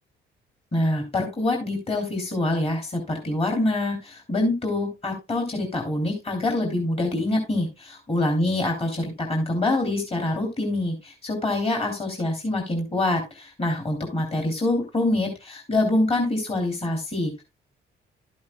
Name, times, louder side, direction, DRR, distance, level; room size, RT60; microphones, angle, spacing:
voice 1, 0.7-17.4, left 2 dB, 30° left, 2 dB, 3.1 m, -25 dB
12.5 x 8.5 x 2.3 m, 0.25 s
cardioid pair, 90°, 20 cm